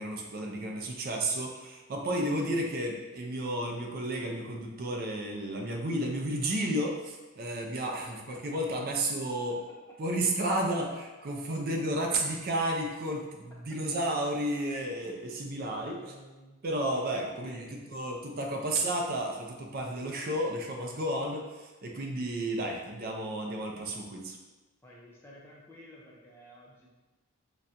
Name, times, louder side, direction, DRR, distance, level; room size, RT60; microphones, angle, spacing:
voice 1, 0.0-9.6 10.0-16.0 16.6-24.4, right 1 dB, 45° right, 1 dB, 0.4 m, -32 dB
voice 2, 8.5-8.8 9.5-9.6 9.9-10.0 13.1-13.2 15.0-16.6 17.1-17.8 24.8-26.9, equal, 10° left, -5 dB, 0.5 m, -53 dB
4.0 x 2.2 x 2.5 m, 1.2 s
head